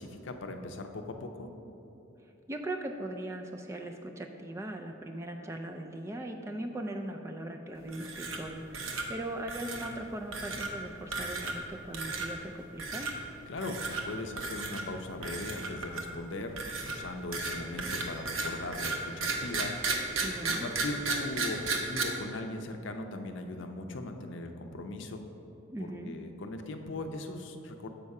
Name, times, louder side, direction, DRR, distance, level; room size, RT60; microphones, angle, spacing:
voice 1, 0.0-1.5 13.5-16.6 16.8-20.0 20.5-25.2 25.8-27.9, left 2 dB, 60° left, 5 dB, 0.5 m, -39 dB
voice 2, 2.2-13.1 20.2-20.7 25.7-26.2, right 1 dB, 15° right, 3 dB, 0.3 m, -39 dB
sound 1, 7.9-8.5 8.7-9.1 9.5-9.9 10.3-10.7 11.1-11.7 11.9-12.3 12.8-13.1 13.6-14.0 14.4-14.8 15.2-16.2 16.6-22.0, right 3 dB, 85° right, 0.8 m, -34 dB
7.4 x 5.4 x 4.7 m, 3.0 s
head